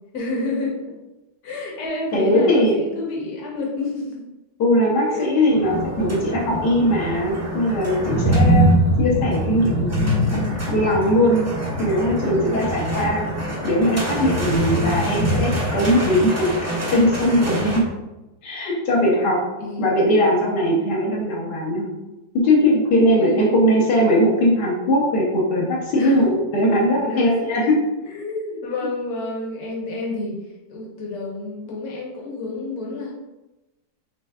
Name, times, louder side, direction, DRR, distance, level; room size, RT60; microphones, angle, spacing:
voice 1, 0.1-0.9 1.4-4.3 5.1-5.3 12.0-12.7 14.3-15.0 19.6-20.0 22.9-23.8 26.0-26.4 27.0-27.5 28.0-30.4 30.7-33.1, left 2 dB, 65° left, -3 dB, 1.6 m, -29 dB
voice 2, 2.1-2.8 4.6-8.7 9.0-10.0 10.3-11.5 11.8-16.5 16.8-17.8 18.4-19.4 19.8-21.8 22.4-27.8, equal, 80° left, -5 dB, 1.5 m, -20 dB
sound 1, 5.5-17.8, equal, 25° right, 0.3 m, -23 dB
7.0 x 3.1 x 2.4 m, 1.0 s
omnidirectional pair, 1.8 m